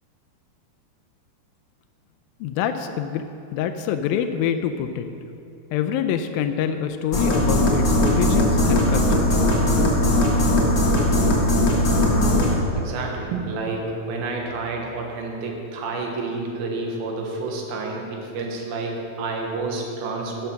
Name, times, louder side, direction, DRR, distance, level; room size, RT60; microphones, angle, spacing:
voice 1, 2.4-3.2 3.5-5.1 5.7-9.3, left 8 dB, 80° left, 8 dB, 2.3 m, -25 dB
sound 1, 7.1-12.6, left 1 dB, 45° left, 1.5 m, -19 dB
voice 2, 12.7-20.5, right 3 dB, 80° right, 0 dB, 3.2 m, -29 dB
11.5 x 7.4 x 5.8 m, 2.8 s
omnidirectional pair, 4.3 m